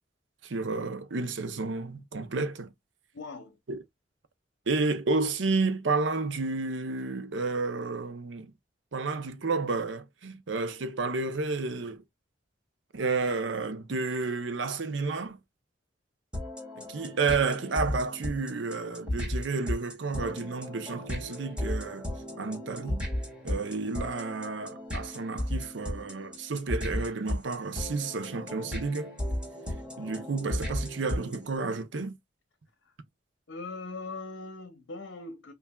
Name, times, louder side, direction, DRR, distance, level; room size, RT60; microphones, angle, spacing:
voice 1, 0.4-2.7 3.7-3.8 4.7-8.5 8.9-12.0 12.9-15.4 16.8-22.1 22.4-23.1 23.4-29.1 30.0-32.2, right 3 dB, 85° right, 0.7 m, -31 dB
voice 2, 3.1-3.6 32.8-32.9 33.5-35.5, left 3 dB, 85° left, 0.7 m, -40 dB
sound 1, 16.3-31.6, left 1 dB, 5° right, 1.8 m, -35 dB
5.5 x 2.4 x 2.2 m
head